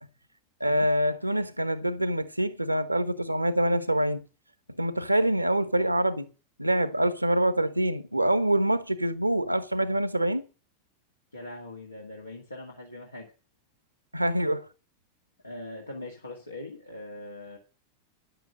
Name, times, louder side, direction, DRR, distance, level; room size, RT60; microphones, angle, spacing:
voice 1, 0.6-4.2 4.8-6.3 6.6-10.4 14.1-14.6, right 1 dB, 85° right, 1.0 m, -25 dB
voice 2, 11.3-13.3 15.4-17.6, left 2 dB, 80° left, 1.9 m, -41 dB
10.5 x 8.1 x 6.3 m
figure-of-eight pair, 90°, 0 cm